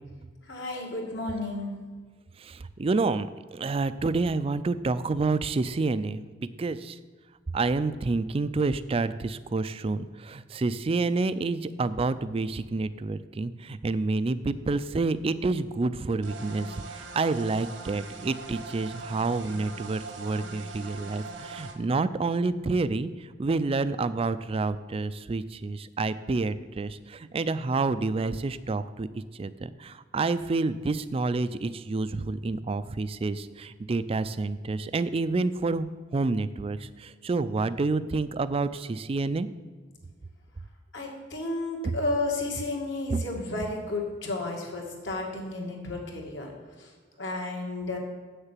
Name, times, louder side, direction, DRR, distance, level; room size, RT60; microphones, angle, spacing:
voice 1, 0.5-1.8 40.9-46.5 46.8-46.9 47.2-48.0, left 2 dB, 65° left, -1 dB, 2.1 m, -32 dB
voice 2, 2.4-7.0 7.5-23.1 23.4-29.1 29.3-35.9 36.1-39.5 43.1-43.2, right 3 dB, 30° right, 14 dB, 0.4 m, -28 dB
sound 1, 16.2-21.8, right 3 dB, 80° right, 1.1 m, -41 dB
8.0 x 6.7 x 7.4 m, 1.5 s
head